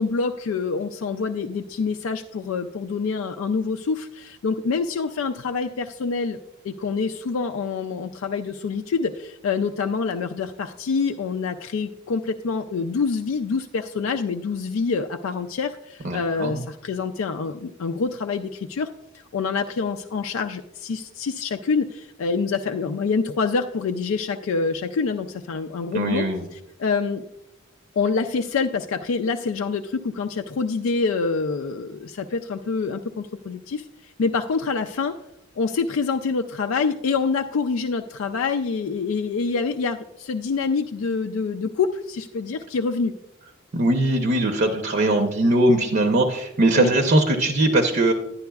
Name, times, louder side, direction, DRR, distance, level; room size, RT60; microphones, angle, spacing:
voice 1, 0.0-6.4 6.6-18.9 19.3-26.3 26.5-27.2 28.0-35.2 35.6-43.2 46.8-47.0, left 4 dB, 75° left, 6 dB, 0.4 m, -26 dB
voice 2, 16.0-16.6 25.9-26.4 43.7-48.1, right 1 dB, 50° right, 4 dB, 0.7 m, -20 dB
11.5 x 10.5 x 2.3 m, 0.91 s
head